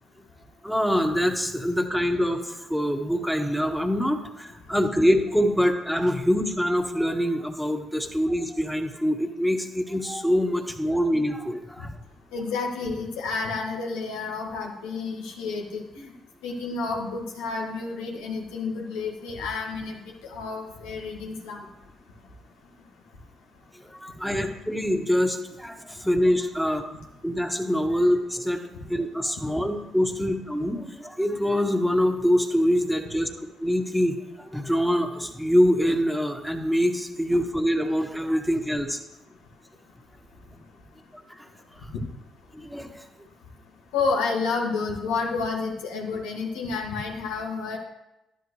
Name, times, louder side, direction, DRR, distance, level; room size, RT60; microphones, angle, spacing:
voice 1, 0.6-11.9 23.8-26.8 27.2-28.6 28.9-39.0 41.4-41.5 42.5-43.0, equal, ahead, 4 dB, 1.5 m, -25 dB
voice 2, 12.3-16.1 16.4-20.0 20.3-21.6 24.3-24.4 41.9-42.0 43.9-47.8, left 4 dB, 85° left, 0 dB, 1.8 m, -30 dB
11.5 x 10.5 x 3.2 m, 0.93 s
hypercardioid pair, 55°, 0 cm